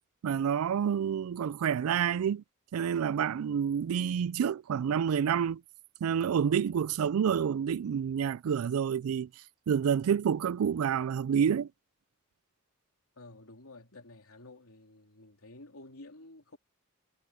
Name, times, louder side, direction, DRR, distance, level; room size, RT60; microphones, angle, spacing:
voice 1, 0.2-2.4 2.7-5.6 6.0-9.3 9.7-11.7, right 8 dB, 85° right, 0.3 m, -28 dB
voice 2, 13.1-16.6, left 2 dB, 90° left, 3.2 m, -51 dB
head